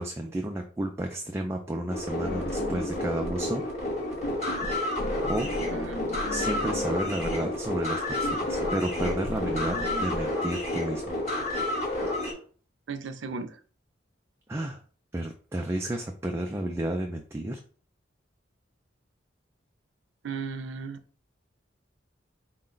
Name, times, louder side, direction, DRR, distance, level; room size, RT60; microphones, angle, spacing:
voice 1, 0.0-3.6 5.3-5.5 6.3-11.0 14.5-14.8 15.1-17.6, right 1 dB, 15° right, 2 dB, 0.4 m, -32 dB
sound 1, 1.9-12.3, left 1 dB, 35° left, 1.5 m, -30 dB
sound 2, 2.2-3.5 3.7-10.2, left 1 dB, 60° left, 0.7 m, -36 dB
voice 2, 5.7-6.0 12.9-13.6 20.2-21.0, right 5 dB, 85° right, 10 dB, 0.5 m, -36 dB
4.6 x 2.1 x 3.8 m, 0.41 s
head